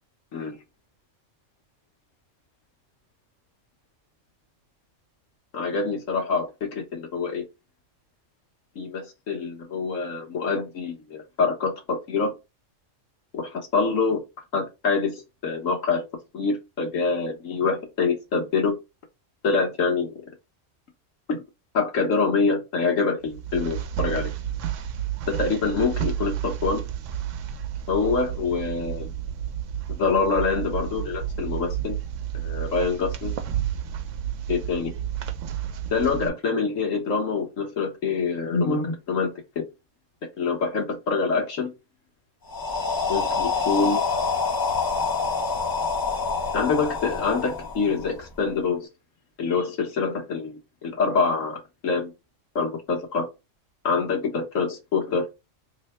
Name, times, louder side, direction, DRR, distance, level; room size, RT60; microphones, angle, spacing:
voice 1, 5.5-7.4 8.7-12.3 13.3-14.2 14.5-16.0 16.3-18.7 19.4-20.1 21.3-21.4 21.7-24.3 25.3-26.8 27.9-29.1 29.9-32.0 32.3-33.4 34.5-34.9 35.9-39.7 40.4-41.7 43.1-44.0 46.5-48.9 49.4-52.1 52.5-53.3 53.8-55.3, left 4 dB, 85° left, 1.6 m, -25 dB
sound 1, 23.2-36.3, right 10 dB, 75° right, 0.9 m, -31 dB
sound 2, 42.5-48.4, left 4 dB, 30° left, 0.4 m, -26 dB
3.3 x 2.2 x 4.1 m
omnidirectional pair, 1.3 m